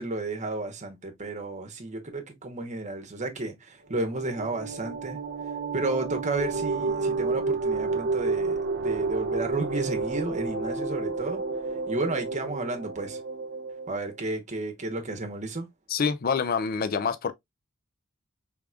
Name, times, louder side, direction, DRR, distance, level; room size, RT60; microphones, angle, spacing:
voice 1, 0.0-5.2 5.7-11.4 11.9-13.2 13.9-15.7, right 2 dB, 35° right, 1.1 m, -32 dB
sound 1, 3.9-14.1, right 3 dB, 55° right, 0.6 m, -30 dB
voice 2, 15.9-17.3, left 5 dB, 45° left, 0.4 m, -26 dB
4.7 x 3.5 x 2.3 m
head